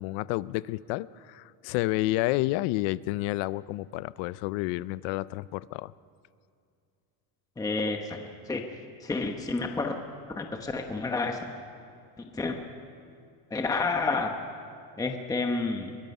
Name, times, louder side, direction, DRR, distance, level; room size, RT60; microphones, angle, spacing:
voice 1, 0.0-5.9, left 18 dB, 65° left, 19 dB, 0.6 m, -30 dB
voice 2, 7.6-8.6 9.0-9.9 10.4-11.5 12.2-12.6 13.5-14.4 15.0-16.0, left 3 dB, 5° left, 4 dB, 1.0 m, -30 dB
22.5 x 22.0 x 5.5 m, 2.5 s
cardioid pair, 150°, 47 cm